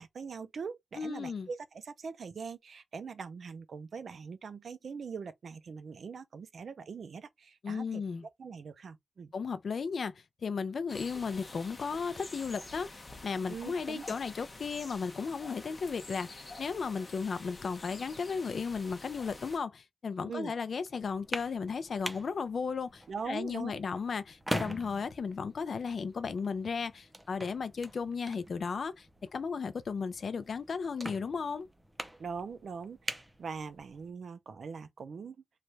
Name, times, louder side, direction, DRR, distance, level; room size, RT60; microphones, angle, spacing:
voice 1, 0.0-8.0 8.4-9.3 13.5-14.1 20.2-20.5 23.1-23.7 32.2-35.4, right 5 dB, 65° right, 0.4 m, -42 dB
voice 2, 1.0-1.5 7.6-8.2 9.3-29.1 29.3-31.7, left 5 dB, 60° left, 0.5 m, -35 dB
sound 1, 10.9-19.6, left 2 dB, 30° left, 0.8 m, -48 dB
sound 2, 21.0-34.1, equal, 5° right, 0.5 m, -44 dB
3.2 x 2.2 x 4.0 m
wide cardioid pair, 165°, 0 cm